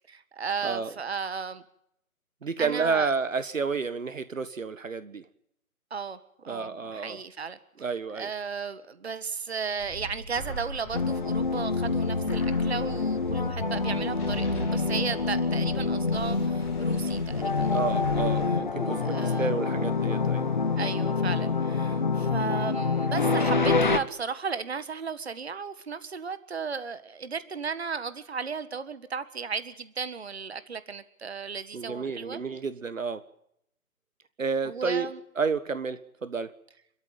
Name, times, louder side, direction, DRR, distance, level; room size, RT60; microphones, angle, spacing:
voice 1, 0.1-1.6 2.6-3.1 5.9-6.2 6.4-17.8 19.0-19.5 20.8-32.4 34.7-35.2, right 5 dB, 45° right, 13 dB, 1.7 m, -35 dB
voice 2, 2.4-5.2 6.5-7.2 7.8-8.3 17.7-20.5 31.7-33.2 34.4-35.1 35.3-36.5, right 5 dB, 60° right, 13 dB, 1.6 m, -30 dB
sound 1, 9.8-18.5, equal, 5° left, 3.8 m, -39 dB
sound 2, 10.9-24.0, left 4 dB, 30° left, 1.2 m, -26 dB
28.5 x 13.5 x 9.2 m, 0.75 s
hypercardioid pair, 175°, 44 cm